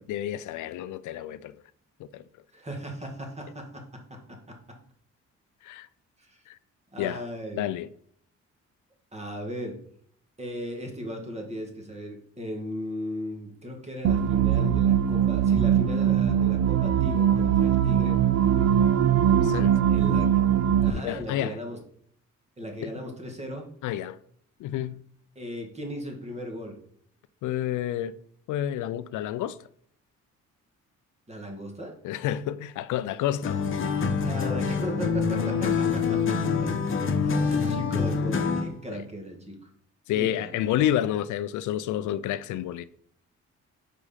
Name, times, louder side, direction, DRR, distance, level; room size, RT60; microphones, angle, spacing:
voice 1, 0.0-1.6 2.0-2.2 5.6-5.9 6.5-6.6 7.0-7.2 7.5-7.9 19.3-19.8 20.9-21.6 22.8-22.9 23.8-24.2 24.6-25.0 27.4-28.2 28.5-29.6 32.0-33.7 40.1-42.8, left 12 dB, 80° left, 0.5 m, -29 dB
voice 2, 2.5-4.6 6.3-6.4 6.9-7.7 9.1-9.8 10.4-18.2 19.9-20.3 20.8-21.8 22.6-23.7 25.4-26.8 31.3-31.9 34.2-36.7 37.2-39.7 40.1-40.8, equal, 20° right, 1.8 m, -37 dB
sound 1, 14.0-20.9, right 9 dB, 60° right, 0.6 m, -21 dB
sound 2, 33.4-38.8, left 5 dB, 40° left, 1.0 m, -26 dB
5.0 x 4.8 x 5.5 m
cardioid pair, 90°, 30 cm